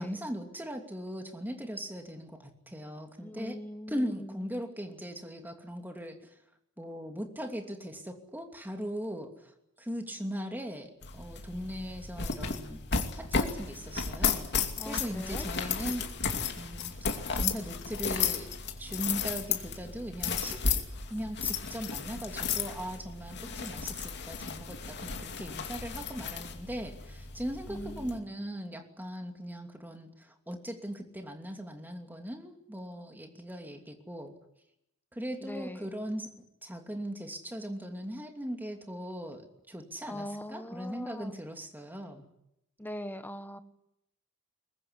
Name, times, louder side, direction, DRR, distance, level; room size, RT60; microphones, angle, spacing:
voice 1, 0.0-3.6 3.9-6.2 6.8-9.5 9.8-12.8 13.1-14.5 14.8-16.1 16.6-18.5 18.8-20.6 21.1-34.3 35.1-36.3 36.6-42.3, equal, 10° right, 4 dB, 2.8 m, -39 dB
voice 2, 3.2-4.5 14.8-15.5 27.7-28.2 35.4-35.9 40.0-41.4 42.8-43.6, equal, 10° left, 10 dB, 1.3 m, -41 dB
sound 1, 11.0-28.2, left 5 dB, 50° left, 2.7 m, -34 dB
22.5 x 21.0 x 9.9 m, 0.82 s
head